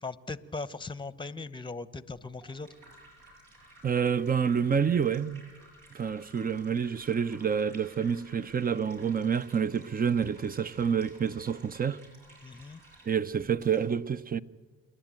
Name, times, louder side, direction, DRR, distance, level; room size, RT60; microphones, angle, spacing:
voice 1, 0.0-2.7 12.4-12.8, left 3 dB, 15° left, 1.0 m, -39 dB
sound 1, 2.1-13.8, right 1 dB, 70° right, 7.7 m, -55 dB
voice 2, 3.8-5.4 5.9-12.0 13.0-14.4, right 7 dB, 25° right, 0.8 m, -28 dB
27.5 x 11.0 x 9.0 m
hypercardioid pair, 55°, 32 cm